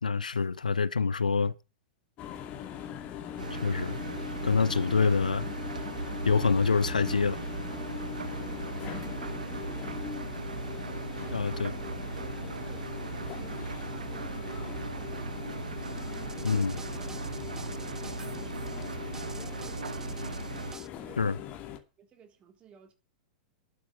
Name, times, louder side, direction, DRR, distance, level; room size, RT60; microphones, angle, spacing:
voice 1, 0.0-1.5 3.5-4.0 4.4-5.4 6.2-7.4 11.3-11.7 16.4-16.7 21.2-21.4, left 5 dB, 75° left, 0.8 m, -26 dB
sound 1, 2.2-21.8, left 9 dB, 35° left, 2.5 m, -41 dB
Engine, 3.4-20.8, right 4 dB, 75° right, 1.3 m, -38 dB
voice 2, 9.2-10.1 11.1-15.8 16.2-17.2 17.4-20.6 21.0-21.5 22.0-22.9, right 7 dB, 25° right, 3.7 m, -54 dB
sound 2, 15.8-20.9, right 4 dB, 10° right, 0.9 m, -49 dB
12.0 x 8.7 x 7.6 m
figure-of-eight pair, 95°, 4 cm